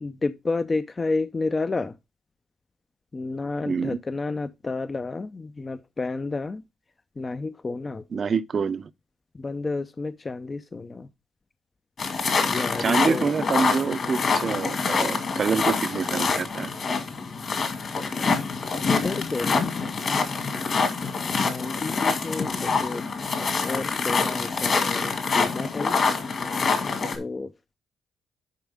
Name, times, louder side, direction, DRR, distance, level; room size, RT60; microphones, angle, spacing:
voice 1, 0.0-1.9 3.1-6.6 7.2-8.0 9.4-11.1 12.5-13.3 18.9-19.6 21.3-23.1 23.4-25.9 27.2-27.5, left 3 dB, 25° left, 0.5 m, -30 dB
voice 2, 3.6-4.0 8.1-8.9 12.8-16.7, right 5 dB, 45° right, 0.6 m, -26 dB
sound 1, 12.0-27.2, left 4 dB, 50° left, 2.1 m, -26 dB
10.5 x 5.3 x 3.5 m
cardioid pair, 90°, 0 cm